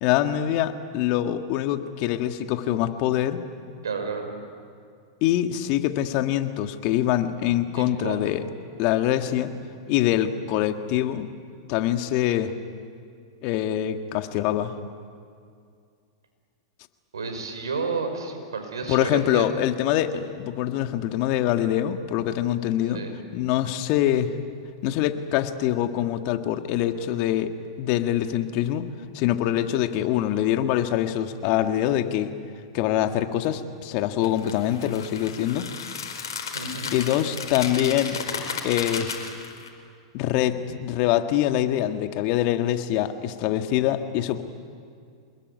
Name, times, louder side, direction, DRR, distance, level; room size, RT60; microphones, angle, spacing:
voice 1, 0.0-3.4 5.2-8.4 8.8-9.5 9.9-11.3 11.7-12.5 13.4-14.8 18.9-23.0 23.3-24.3 24.8-27.5 27.8-28.8 29.1-32.3 32.7-35.7 36.9-38.2 38.6-39.2 40.1-44.4, left 12 dB, 50° left, 7 dB, 1.8 m, -24 dB
voice 2, 3.8-4.3 7.7-8.2 17.1-19.5 22.9-23.2 36.5-37.1 40.7-40.8, right 4 dB, 85° right, 5 dB, 5.6 m, -31 dB
sound 1, 34.2-39.7, left 6 dB, 80° left, 4.6 m, -34 dB
27.0 x 21.0 x 9.6 m, 2.3 s
hypercardioid pair, 105°, 2 cm